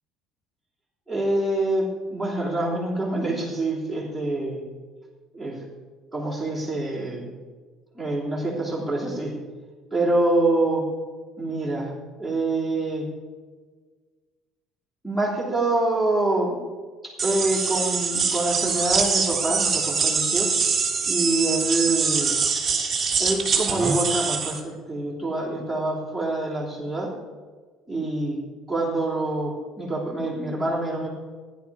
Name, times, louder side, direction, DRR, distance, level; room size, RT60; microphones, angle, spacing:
voice 1, 1.1-4.6 5.3-5.6 6.1-7.3 7.9-9.4 9.9-10.9 11.4-11.9 12.2-13.1 15.0-16.6 17.0-20.5 21.1-22.4 23.2-27.1 27.9-28.4 28.7-31.1, right 2 dB, 5° left, -4 dB, 3.2 m, -26 dB
sound 1, 17.2-24.6, right 5 dB, 20° right, 1.6 m, -24 dB
15.5 x 10.0 x 4.8 m, 1.5 s
cardioid pair, 155°, 0 cm